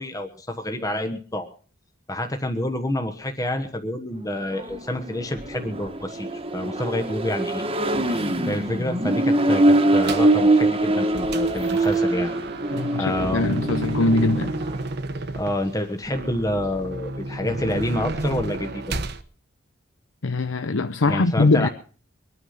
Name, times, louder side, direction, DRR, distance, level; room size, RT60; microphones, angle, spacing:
voice 1, 0.0-1.5 2.1-7.7 8.0-12.3 12.9-13.6 15.3-18.9 21.1-21.7, left 1 dB, 15° left, 1.2 m, -28 dB
Accelerating revving vroom, 4.4-14.9, right 2 dB, 30° right, 1.4 m, -23 dB
sound 1, 10.0-10.4 10.9-19.2, right 2 dB, 55° right, 1.1 m, -32 dB
voice 2, 12.7-14.6 20.2-21.7, left 2 dB, 80° left, 0.8 m, -22 dB
23.5 x 9.8 x 5.6 m
head